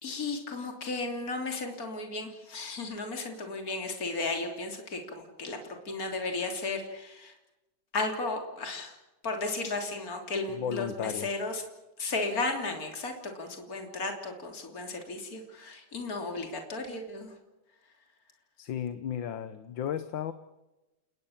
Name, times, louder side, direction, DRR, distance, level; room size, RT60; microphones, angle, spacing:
voice 1, 0.0-7.3 7.9-9.0 9.2-11.6 12.0-17.4, left 3 dB, 50° left, 4 dB, 3.7 m, -34 dB
voice 2, 10.5-11.3 18.6-20.3, left 9 dB, 85° left, 11 dB, 1.8 m, -34 dB
29.5 x 20.0 x 7.3 m, 1.0 s
omnidirectional pair, 2.0 m